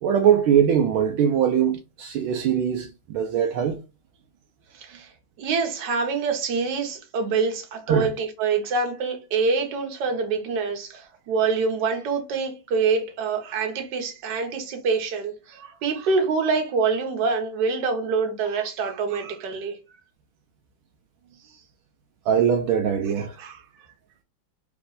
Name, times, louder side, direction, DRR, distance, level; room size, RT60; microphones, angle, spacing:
voice 1, 0.0-3.8 7.9-8.1 22.3-23.4, right 8 dB, 80° right, 1.4 m, -21 dB
voice 2, 4.7-5.1 5.4-19.8 23.2-23.6, right 4 dB, 60° right, 1.4 m, -26 dB
3.5 x 3.0 x 3.8 m
omnidirectional pair, 2.3 m